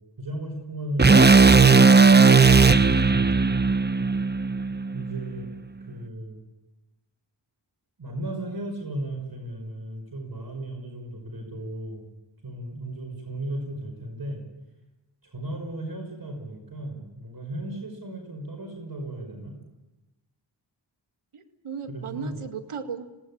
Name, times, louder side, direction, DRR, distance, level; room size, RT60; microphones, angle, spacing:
voice 1, 0.2-2.0 2.6-3.4 4.9-5.5 5.9-6.4 8.0-12.0 12.4-14.4 15.2-19.6 21.9-22.4, right 1 dB, 45° right, 4 dB, 5.7 m, -35 dB
sound 1, 1.0-5.2, right 4 dB, 20° right, 0.9 m, -16 dB
voice 2, 21.3-23.2, right 6 dB, 85° right, 7 dB, 2.2 m, -36 dB
27.0 x 18.5 x 8.7 m, 1.0 s
cardioid pair, 55°, 49 cm